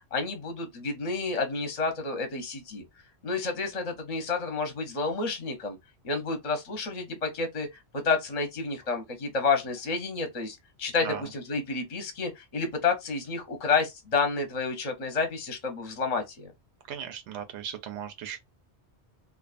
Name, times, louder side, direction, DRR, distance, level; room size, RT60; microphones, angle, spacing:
voice 1, 0.1-2.8 3.2-5.8 6.0-16.5, left 4 dB, 40° left, 0.7 m, -30 dB
voice 2, 16.9-18.4, right 8 dB, 85° right, 0.9 m, -37 dB
2.4 x 2.3 x 2.4 m
omnidirectional pair, 1.1 m